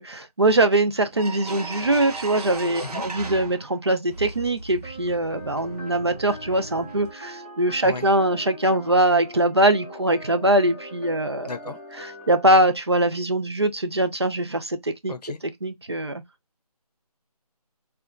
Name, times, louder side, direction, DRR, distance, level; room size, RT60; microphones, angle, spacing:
voice 1, 0.0-11.5 12.3-15.1 15.6-16.2, right 1 dB, 40° right, 0.4 m, -22 dB
sound 1, 0.7-0.8 1.1-3.8 4.1-7.1, right 3 dB, 70° right, 0.7 m, -37 dB
sound 2, 4.8-12.5, equal, 15° left, 0.5 m, -41 dB
voice 2, 11.4-11.8 15.1-15.4, left 4 dB, 75° left, 0.6 m, -34 dB
2.8 x 2.2 x 2.3 m
figure-of-eight pair, 175°, 20 cm